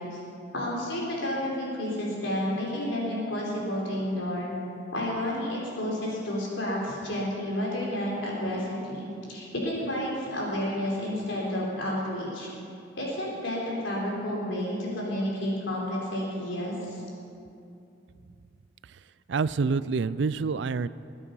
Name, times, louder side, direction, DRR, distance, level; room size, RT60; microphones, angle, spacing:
voice 1, 0.5-4.5 4.9-12.5 13.0-17.0, left 1 dB, 80° left, -3 dB, 4.3 m, -31 dB
voice 2, 19.3-20.9, right 4 dB, 65° right, 17 dB, 0.4 m, -27 dB
21.5 x 9.8 x 5.5 m, 2.6 s
head